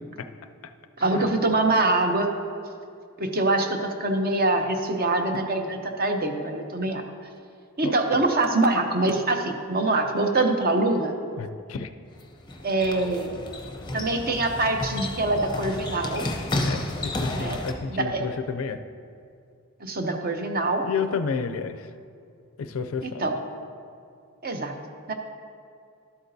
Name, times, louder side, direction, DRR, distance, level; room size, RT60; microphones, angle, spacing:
voice 1, 1.0-2.3 3.2-7.0 7.8-11.1 12.6-13.3 13.9-16.3 17.3-17.6 17.9-18.3 19.8-20.8 23.0-23.3 24.4-24.7 25.1-25.2, right 2 dB, 45° right, 5 dB, 0.7 m, -24 dB
voice 2, 11.4-11.9 16.6-18.8 20.8-21.9 22.6-23.3, left 5 dB, 70° left, 9 dB, 0.4 m, -31 dB
sound 1, 12.1-17.7, left 1 dB, 20° left, 0.6 m, -32 dB
12.0 x 8.1 x 2.7 m, 2.3 s
head